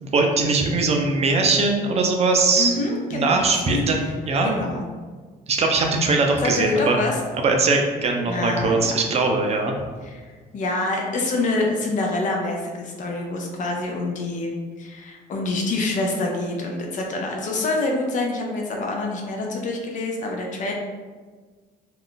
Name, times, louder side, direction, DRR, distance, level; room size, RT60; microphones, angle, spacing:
voice 1, 0.0-2.7 3.1-4.0 4.3-4.6 5.5-7.0 7.3-9.7, right 3 dB, 40° right, 2 dB, 0.4 m, -21 dB
voice 2, 2.6-3.8 4.4-4.8 6.4-7.2 8.3-9.0 10.0-14.5 14.8-20.7, left 2 dB, 50° left, 0 dB, 0.6 m, -26 dB
2.4 x 2.3 x 3.6 m, 1.5 s
cardioid pair, 110°, 17 cm